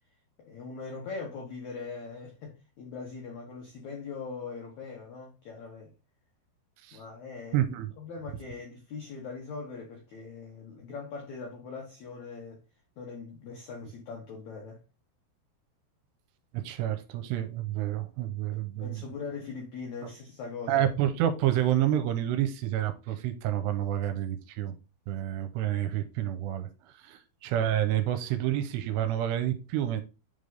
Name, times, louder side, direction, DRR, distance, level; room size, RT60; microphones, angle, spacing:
voice 1, 0.5-5.9 6.9-7.6 8.0-12.6 13.0-14.8 18.5-20.9, left 4 dB, 80° left, 1.6 m, -41 dB
voice 2, 7.5-7.9 16.5-19.0 20.7-24.8 25.1-26.7 27.0-30.0, right 11 dB, 85° right, 2.8 m, -29 dB
7.8 x 3.4 x 3.9 m
omnidirectional pair, 5.0 m